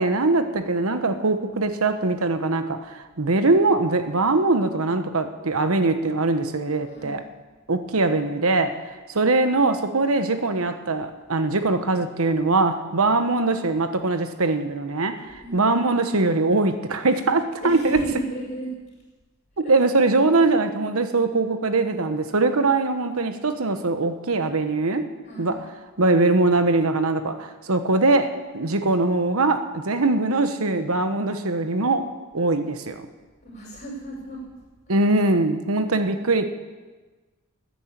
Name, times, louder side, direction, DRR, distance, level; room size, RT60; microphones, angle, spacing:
voice 1, 0.0-7.2 7.7-8.8 9.1-18.0 19.7-25.1 25.4-25.6 26.0-32.1 32.3-33.0 34.9-36.5, right 3 dB, 85° right, 9 dB, 1.2 m, -22 dB
voice 2, 6.9-7.2 15.4-15.7 17.6-18.7 19.6-19.7 25.2-25.6 33.4-34.5 35.9-36.0, right 2 dB, 40° left, -5 dB, 5.9 m, -34 dB
13.5 x 10.0 x 8.2 m, 1.3 s
head